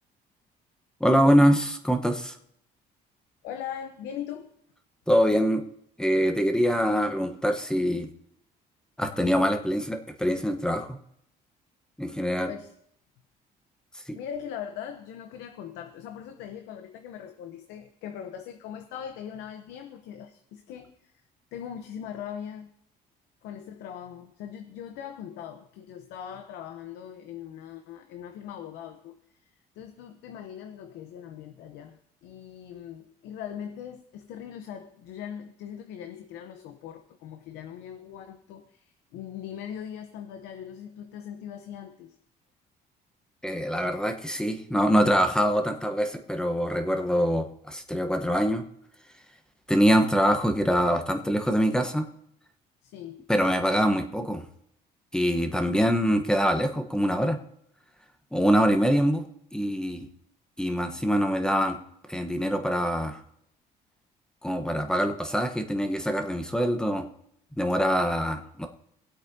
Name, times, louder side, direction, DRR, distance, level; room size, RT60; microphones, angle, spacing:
voice 1, 1.0-2.3 5.1-5.6 6.0-8.1 9.0-11.0 12.0-12.5 14.1-14.2 43.4-48.6 49.7-52.1 53.3-54.4 55.1-57.4 58.3-60.1 60.6-61.8 62.1-63.2 64.4-67.1 67.6-68.7, equal, 5° left, 6 dB, 1.0 m, -24 dB
voice 2, 3.4-4.5 12.5-12.7 14.1-21.1 21.5-22.7 23.4-29.5 29.7-42.2 52.8-53.3, left 9 dB, 90° left, 7 dB, 0.9 m, -40 dB
22.0 x 8.2 x 2.8 m, 0.73 s
cardioid pair, 110°, 17 cm